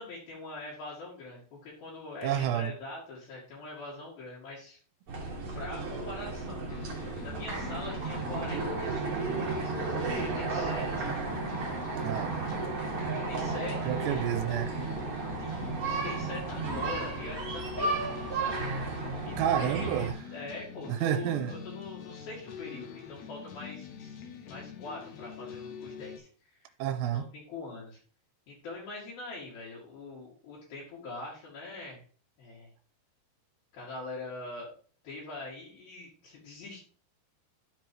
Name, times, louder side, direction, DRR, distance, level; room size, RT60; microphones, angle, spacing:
voice 1, 0.0-4.8 5.6-11.1 13.3-14.4 15.4-26.7 27.1-28.0 28.5-32.0 32.4-32.7 33.7-34.7 35.0-36.8, left 3 dB, 65° left, 4.0 m, -43 dB
voice 2, 2.2-2.7 12.0-12.6 13.9-14.7 19.4-20.2 20.9-21.5 26.8-27.3, right 10 dB, 90° right, 2.8 m, -30 dB
sound 1, 5.1-20.1, right 3 dB, 45° right, 1.9 m, -33 dB
sound 2, 6.7-26.2, left 7 dB, 85° left, 1.5 m, -45 dB
13.0 x 4.7 x 3.0 m
omnidirectional pair, 4.9 m